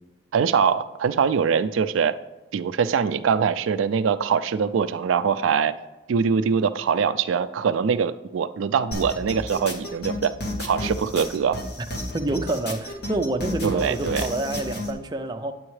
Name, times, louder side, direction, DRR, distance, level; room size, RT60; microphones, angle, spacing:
voice 1, 0.3-2.1 2.5-5.7 6.1-10.3 10.6-11.6 13.6-14.3, right 6 dB, 90° right, 12 dB, 0.4 m, -23 dB
sound 1, 8.9-14.9, left 1 dB, 55° left, 1.2 m, -32 dB
voice 2, 12.1-15.5, right 2 dB, 20° right, 5 dB, 0.4 m, -27 dB
9.6 x 7.8 x 3.2 m, 1.1 s
head